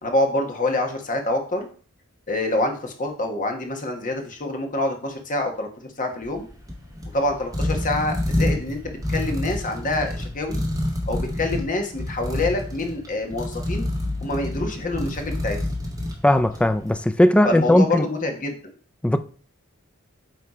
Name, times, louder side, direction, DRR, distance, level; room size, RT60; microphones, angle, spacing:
voice 1, 0.0-1.7 2.3-5.7 6.0-6.5 7.1-10.6 11.1-13.9 14.2-15.6 17.4-18.7, left 2 dB, 40° left, 1.3 m, -26 dB
sound 1, 6.2-16.8, left 1 dB, 15° right, 1.8 m, -28 dB
voice 2, 16.2-18.1 19.0-19.2, left 1 dB, 5° left, 0.3 m, -18 dB
8.3 x 3.2 x 4.9 m
head